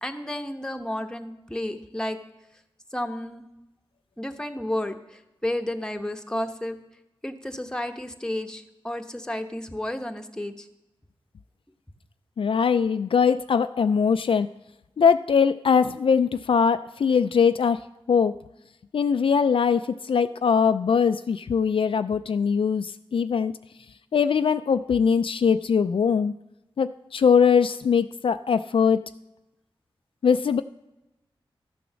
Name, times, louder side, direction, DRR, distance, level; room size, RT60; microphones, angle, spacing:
voice 1, 0.0-2.2 2.9-3.5 4.2-6.8 7.2-10.7, left 1 dB, 5° left, 6 dB, 1.0 m, -32 dB
voice 2, 12.4-14.5 15.0-18.4 18.9-23.5 24.1-26.3 26.8-29.0 30.2-30.6, left 6 dB, 70° left, 10 dB, 0.3 m, -21 dB
13.0 x 6.9 x 6.2 m, 0.95 s
wide cardioid pair, 70°, 9 cm